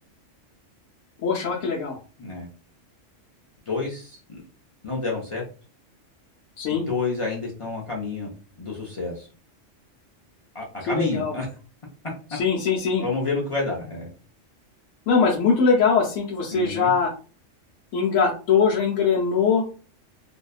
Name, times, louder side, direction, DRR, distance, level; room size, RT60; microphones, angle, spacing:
voice 1, 1.2-2.0 6.6-6.8 10.9-11.3 12.3-13.0 15.1-17.1 17.9-19.6, left 5 dB, 90° left, -4 dB, 1.0 m, -21 dB
voice 2, 3.7-4.4 4.8-5.4 6.7-9.3 10.5-11.5 13.0-14.1 16.5-16.9, left 3 dB, 50° left, -3 dB, 0.4 m, -29 dB
2.7 x 2.2 x 2.3 m, 0.36 s
omnidirectional pair, 1.3 m